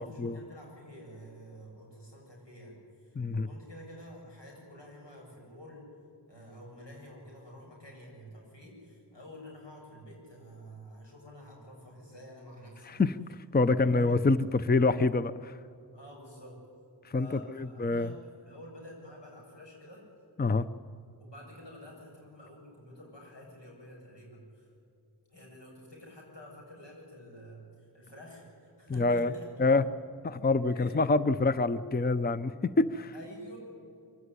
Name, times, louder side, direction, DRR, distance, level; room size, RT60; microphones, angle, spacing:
voice 1, 0.0-5.8 6.3-13.0 13.6-14.2 15.9-16.6 17.1-20.0 21.2-24.7 25.3-27.7 27.9-29.5 30.7-31.0 33.1-33.6, equal, 85° left, -2 dB, 7.8 m, -49 dB
voice 2, 3.2-3.5 12.9-15.6 17.1-18.1 20.4-20.7 28.9-29.3 29.6-29.8 30.2-33.1, left 3 dB, 25° left, 14 dB, 0.6 m, -26 dB
24.0 x 16.0 x 9.8 m, 2.5 s
wide cardioid pair, 55°, 41 cm